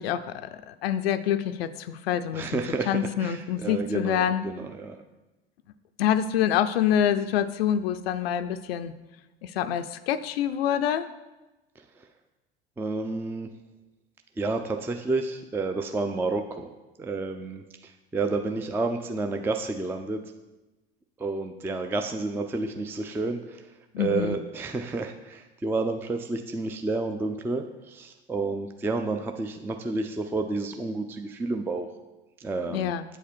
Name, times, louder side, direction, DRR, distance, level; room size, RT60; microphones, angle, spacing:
voice 1, 0.0-2.6 2.9-4.5 6.0-8.9 9.4-11.1 23.9-24.4 32.7-33.0, left 9 dB, 80° left, 11 dB, 0.5 m, -26 dB
voice 2, 2.3-5.0 11.8-11.9 12.8-13.5 14.4-16.7 17.0-20.2 21.2-23.7 24.0-31.9 32.4-32.9, right 3 dB, 5° right, 6 dB, 0.4 m, -30 dB
8.1 x 4.9 x 4.4 m, 1.1 s
hypercardioid pair, 80°, 30 cm